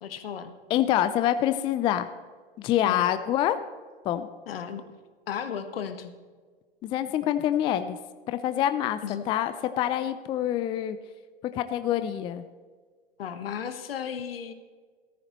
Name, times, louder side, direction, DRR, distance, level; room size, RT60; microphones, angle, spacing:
voice 1, 0.0-0.5 2.9-3.1 4.5-4.8 5.3-6.1 9.0-9.2 13.2-14.5, left 8 dB, 70° left, 9 dB, 1.3 m, -34 dB
voice 2, 0.7-2.1 2.6-3.6 4.1-4.3 6.8-8.0 8.3-9.0 9.3-11.0 11.5-12.4, left 11 dB, 15° left, 11 dB, 0.4 m, -26 dB
14.5 x 14.0 x 3.0 m, 1.5 s
hypercardioid pair, 110°, 30 cm